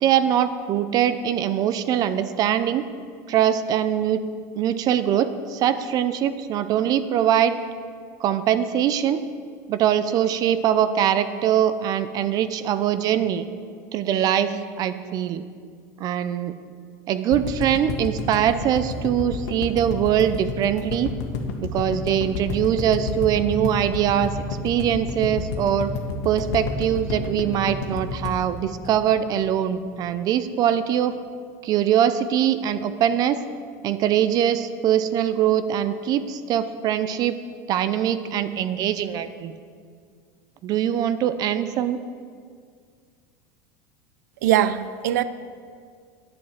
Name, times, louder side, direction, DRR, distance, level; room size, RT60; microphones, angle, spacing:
voice 1, 0.0-2.8 3.3-4.2 4.5-7.5 8.2-9.2 9.7-13.5 13.9-15.4 16.0-16.5 17.1-21.1 21.6-25.9 26.2-31.2 31.6-33.4 33.8-37.3 37.7-39.5 40.6-42.0, right 10 dB, 45° right, 0.6 m, -22 dB
sound 1, 17.3-29.5 29.8-29.9 30.1-30.2, left 4 dB, 80° left, 1.6 m, -30 dB
voice 2, 44.4-45.2, right 12 dB, 85° right, 0.5 m, -21 dB
10.5 x 7.5 x 7.3 m
supercardioid pair, 125°, 9 cm